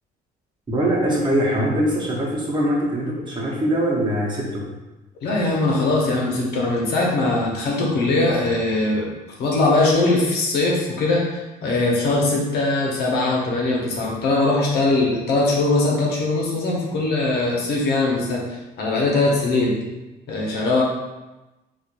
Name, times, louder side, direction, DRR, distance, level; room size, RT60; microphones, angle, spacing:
voice 1, 0.7-4.7, equal, 25° right, -4 dB, 1.0 m, -22 dB
voice 2, 5.2-9.1 9.4-18.4 18.8-19.8 20.3-20.8, left 2 dB, 70° left, -3 dB, 1.0 m, -21 dB
4.4 x 2.5 x 2.5 m, 1.1 s
cardioid pair, 110°, 17 cm